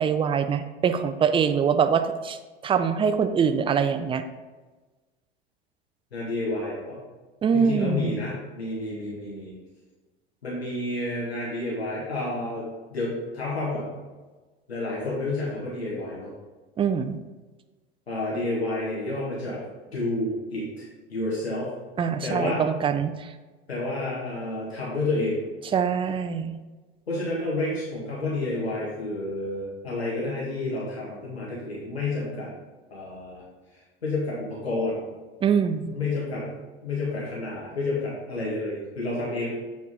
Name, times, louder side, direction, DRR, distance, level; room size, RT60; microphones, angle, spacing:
voice 1, 0.0-2.4 2.6-4.2 7.4-8.2 16.8-17.2 22.0-23.3 25.7-26.6 35.4-35.9, right 7 dB, 15° right, 10 dB, 0.5 m, -24 dB
voice 2, 6.1-7.0 7.5-9.5 10.4-12.7 12.9-13.9 14.7-16.3 18.1-19.6 19.9-21.7 22.2-22.7 23.7-25.4 27.1-32.5 32.9-33.4 33.7-35.0 35.8-36.4 36.8-39.5, left 2 dB, 85° left, -6 dB, 1.8 m, -30 dB
8.1 x 4.6 x 3.7 m, 1.3 s
figure-of-eight pair, 80°, 31 cm